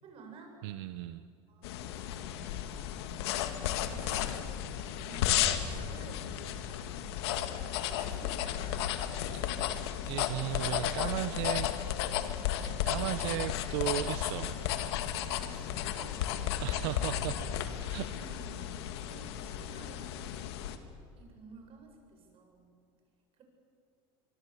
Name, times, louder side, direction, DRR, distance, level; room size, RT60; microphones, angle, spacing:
voice 1, 0.0-0.5 1.5-2.5 3.6-4.5 5.0-6.4 6.9-8.6 15.4-16.9 18.2-18.7 19.1-20.5 21.2-22.7 23.4-23.5, right 4 dB, 45° right, 3 dB, 7.8 m, -53 dB
voice 2, 0.6-1.3 9.3-9.4 10.1-11.7 12.5-14.6 16.6-17.4 17.9-18.7, right 15 dB, 80° right, 12 dB, 0.9 m, -36 dB
sound 1, 1.6-20.8, left 10 dB, 85° left, 1.9 m, -34 dB
24.5 x 24.0 x 8.3 m, 2.5 s
supercardioid pair, 115°, 13 cm